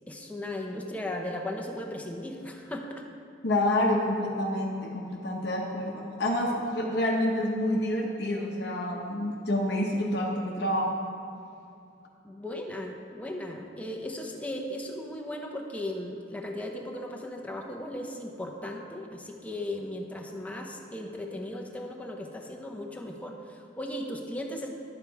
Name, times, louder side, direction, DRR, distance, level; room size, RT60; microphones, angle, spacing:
voice 1, 0.1-3.1 12.2-24.7, left 1 dB, 10° left, 1 dB, 0.7 m, -37 dB
voice 2, 3.4-11.0, left 1 dB, 60° left, -1 dB, 0.8 m, -28 dB
9.7 x 7.3 x 4.7 m, 2.6 s
head